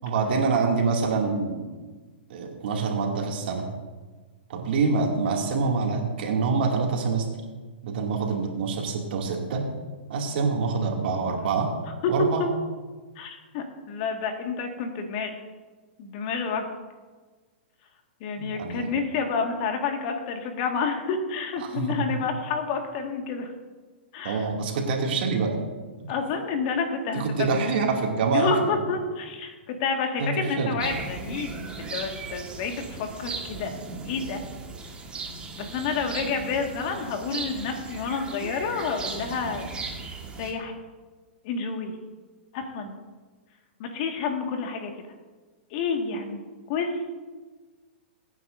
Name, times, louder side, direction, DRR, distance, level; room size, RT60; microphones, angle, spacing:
voice 1, 0.0-1.7 2.3-3.7 4.5-7.3 7.8-9.6 10.1-11.7 12.1-12.4 18.4-18.9 21.6-22.1 24.2-25.6 26.0-26.1 27.1-28.7 30.2-30.7, right 4 dB, 60° right, 0 dB, 2.7 m, -26 dB
voice 2, 13.2-15.3 16.0-16.7 18.2-23.5 24.1-24.5 26.1-27.8 28.2-33.7 34.1-34.4 35.5-39.7 40.0-40.7 41.4-42.0 42.5-43.0 43.8-44.9 45.7-46.4 46.7-47.2, left 5 dB, 50° left, 3 dB, 2.0 m, -29 dB
sound 1, 30.8-40.5, right 4 dB, 15° right, 1.7 m, -37 dB
22.5 x 9.3 x 2.7 m, 1.3 s
hypercardioid pair, 125°, 6 cm